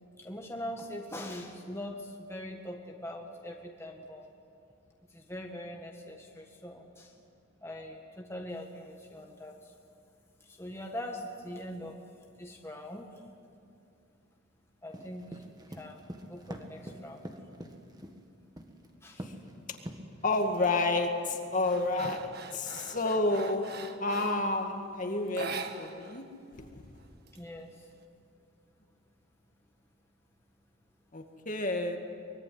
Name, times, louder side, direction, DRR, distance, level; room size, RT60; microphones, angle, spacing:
voice 1, 0.2-4.3 5.1-7.1 7.6-9.6 10.5-12.0 12.4-13.1 14.8-15.4 15.8-17.2 19.0-19.2 27.3-27.8, left 1 dB, 10° left, 1 dB, 1.7 m, -42 dB
sound 1, 14.9-18.2 18.6-18.9 19.2-19.5 19.9-20.4, equal, 20° right, 1.7 m, -43 dB
voice 2, 20.2-23.7 24.0-26.3 26.6-26.7 31.1-32.0, left 2 dB, 40° left, 4 dB, 2.1 m, -30 dB
sound 2, 20.3-20.7 21.1-24.5 25.3-26.2 26.5-26.6 27.0-27.9, right 4 dB, 50° right, 1.5 m, -42 dB
24.0 x 22.5 x 9.5 m, 2.4 s
head